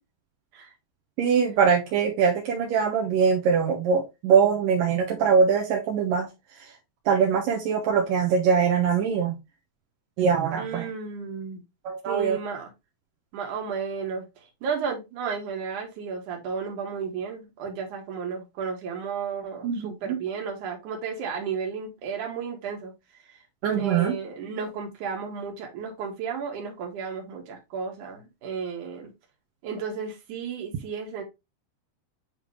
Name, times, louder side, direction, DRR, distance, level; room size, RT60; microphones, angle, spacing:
voice 1, 1.2-6.3 7.1-9.3 10.2-10.8 11.8-12.4 19.6-20.2 23.6-24.2, right 6 dB, 70° right, 2.2 m, -22 dB
voice 2, 10.6-11.6 12.1-12.7 13.3-22.9 23.3-23.4 23.7-29.1 29.6-31.2, right 6 dB, 55° right, 2.6 m, -33 dB
9.4 x 3.5 x 3.2 m
omnidirectional pair, 5.2 m